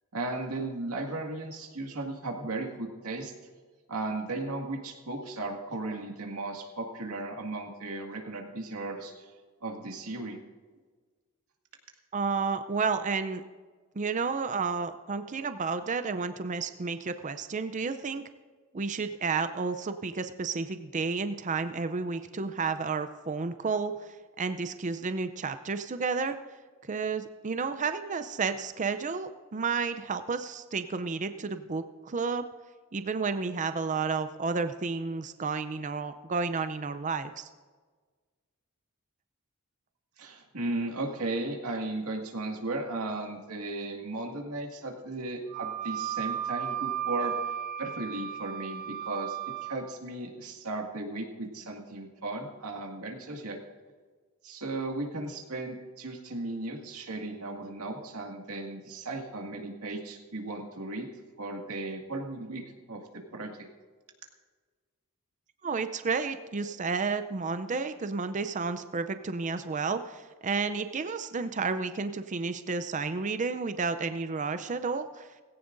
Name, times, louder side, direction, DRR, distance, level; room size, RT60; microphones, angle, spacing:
voice 1, 0.1-3.3 3.9-9.3 9.6-10.4 40.2-47.4 47.8-53.6 54.4-61.1 61.4-62.6 62.9-63.5, right 2 dB, 85° right, 1 dB, 2.0 m, -36 dB
voice 2, 12.1-13.4 14.0-18.2 18.7-26.4 26.8-32.5 32.9-37.5 65.6-75.3, right 4 dB, 35° right, 10 dB, 0.5 m, -31 dB
Wind instrument woodwind instrument, 45.5-49.8, right 10 dB, 70° right, 3.2 m, -34 dB
19.0 x 16.5 x 2.6 m, 1.5 s
head